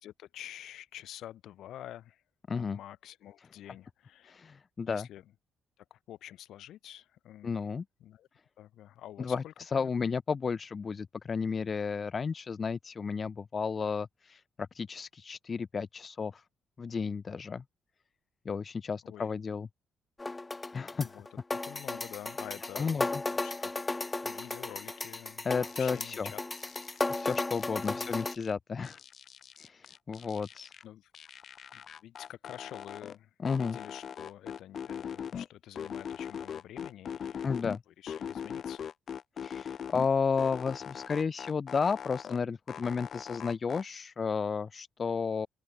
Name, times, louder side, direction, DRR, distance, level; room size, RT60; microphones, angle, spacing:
voice 1, 0.0-2.2 2.5-4.3 4.9-5.2 5.8-7.7 8.0-8.3 8.6-10.1 19.0-19.3 21.0-26.4 27.9-28.1 30.8-31.1 31.7-37.5 37.9-38.9, left 12 dB, 80° left, 3.9 m, -48 dB
voice 2, 2.5-2.8 4.3-5.1 7.4-7.8 9.2-16.4 16.8-17.6 18.5-19.7 20.7-21.1 22.7-23.2 25.4-26.3 27.1-29.0 29.6-30.7 33.4-33.8 37.4-37.8 39.4-45.5, left 5 dB, 40° left, 0.5 m, -32 dB
sound 1, 20.2-28.3, left 2 dB, 20° left, 1.5 m, -35 dB
sound 2, 25.7-26.2 26.5-28.5 28.8-30.8 31.1-33.2 33.4-35.5 35.8-37.8 38.1-40.1 40.4-42.4 42.7-43.8, left 8 dB, 55° left, 3.3 m, -41 dB
open air
cardioid pair, 90°, 0 cm